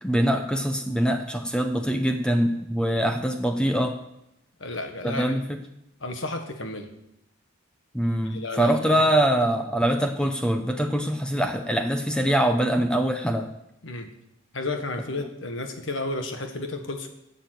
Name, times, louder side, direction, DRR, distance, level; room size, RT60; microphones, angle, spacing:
voice 1, 0.0-4.0 5.0-5.6 7.9-13.5, right 1 dB, 5° left, 5 dB, 0.7 m, -23 dB
voice 2, 4.6-5.4 6.0-6.9 8.2-9.1 13.8-14.1 14.5-17.1, left 2 dB, 60° left, 5 dB, 1.5 m, -32 dB
11.0 x 7.3 x 7.9 m, 0.82 s
head